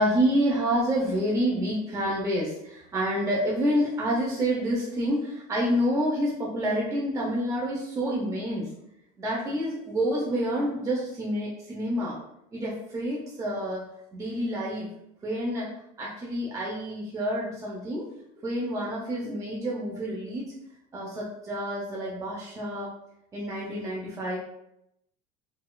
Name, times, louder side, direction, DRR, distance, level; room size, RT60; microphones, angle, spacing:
voice 1, 0.0-8.7 9.2-12.2 12.5-13.8 14.1-14.9 15.2-15.7 16.0-18.0 18.4-20.5 20.9-22.9 23.3-24.4, equal, 20° right, -4 dB, 0.6 m, -28 dB
4.0 x 2.4 x 2.2 m, 0.80 s
cardioid pair, 145°, 18 cm